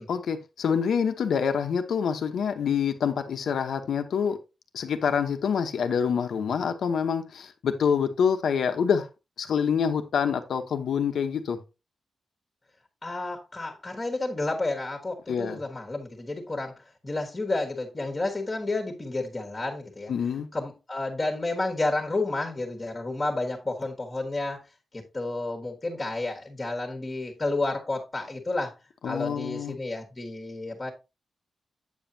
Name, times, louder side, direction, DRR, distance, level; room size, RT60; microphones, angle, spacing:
voice 1, 0.1-4.4 4.7-9.1 9.4-11.6 15.3-15.6 20.1-20.5 29.0-29.7, left 7 dB, 85° left, 1.0 m, -26 dB
voice 2, 13.0-16.7 17.0-20.1 20.5-24.6 24.9-28.7 29.0-30.9, left 2 dB, 20° left, 1.4 m, -31 dB
8.4 x 7.2 x 2.8 m
wide cardioid pair, 160°, 0 cm